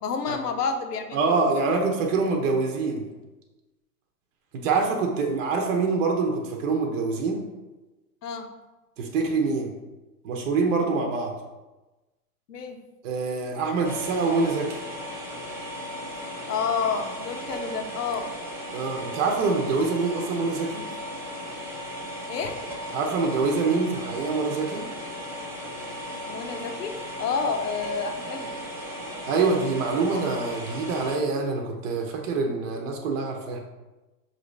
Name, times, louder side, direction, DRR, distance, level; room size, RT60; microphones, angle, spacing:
voice 1, 0.0-1.8 8.2-8.5 12.5-12.8 15.9-16.0 16.5-18.3 22.3-22.6 26.3-28.5 31.1-31.5, left 5 dB, 85° left, 5 dB, 0.8 m, -30 dB
voice 2, 1.1-3.1 4.5-7.4 9.0-9.7 10.2-11.3 13.0-14.8 18.7-20.8 22.9-24.8 29.3-33.6, right 4 dB, 55° right, 3 dB, 0.8 m, -25 dB
sound 1, 13.8-31.2, equal, 5° right, 0.7 m, -36 dB
5.8 x 2.7 x 3.2 m, 1.1 s
hypercardioid pair, 115°, 47 cm